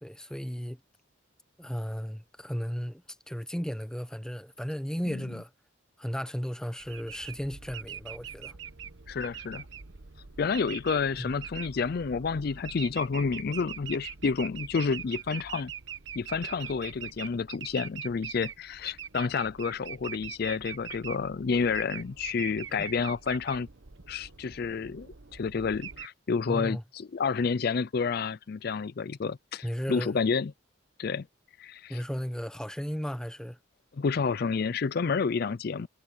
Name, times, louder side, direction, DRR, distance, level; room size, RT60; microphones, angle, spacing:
voice 1, 0.0-0.8 1.6-5.5 6.0-8.6 11.1-11.3 22.7-22.9 26.5-26.8 29.6-30.1 31.9-33.6, equal, 5° left, 0.9 m, -35 dB
sound 1, 6.8-26.1, right 8 dB, 70° right, 1.1 m, -43 dB
voice 2, 9.1-9.7 10.4-15.7 16.2-23.7 24.1-30.5 31.0-31.3 31.6-32.0 33.9-35.9, left 5 dB, 50° left, 0.4 m, -30 dB
head